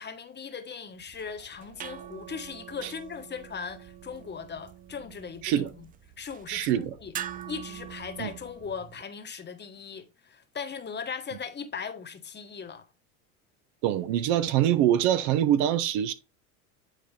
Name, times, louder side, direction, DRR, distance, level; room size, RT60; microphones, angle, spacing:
voice 1, 0.0-5.9 6.2-7.1 7.5-12.8, left 6 dB, 25° left, 1.2 m, -39 dB
sound 1, 1.0-9.0, right 10 dB, 20° right, 0.4 m, -44 dB
voice 2, 6.5-7.0 8.2-8.3 13.8-16.1, right 11 dB, 65° right, 1.0 m, -24 dB
9.1 x 4.3 x 3.3 m
hypercardioid pair, 90°, 42 cm